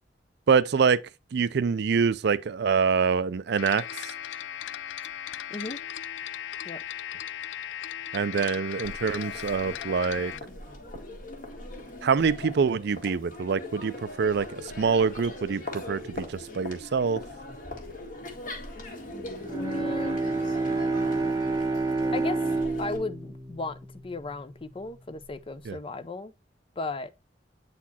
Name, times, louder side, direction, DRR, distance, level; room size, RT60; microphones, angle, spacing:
voice 1, 0.5-1.0 1.3-3.8 8.1-10.3 12.0-17.2 25.7-25.8, right 5 dB, 65° right, 0.4 m, -25 dB
sound 1, 3.6-10.4, left 10 dB, 80° left, 0.4 m, -37 dB
voice 2, 5.5-5.8 6.6-6.8 19.5-20.2 22.1-22.4 22.8-23.8 24.0-26.3 26.8-27.1, left 3 dB, 30° left, 0.5 m, -34 dB
Crowd, 8.8-23.0, left 2 dB, 50° left, 1.7 m, -40 dB
Bowed string instrument, 19.4-24.8, right 3 dB, 20° right, 0.8 m, -29 dB
8.4 x 4.1 x 2.8 m
head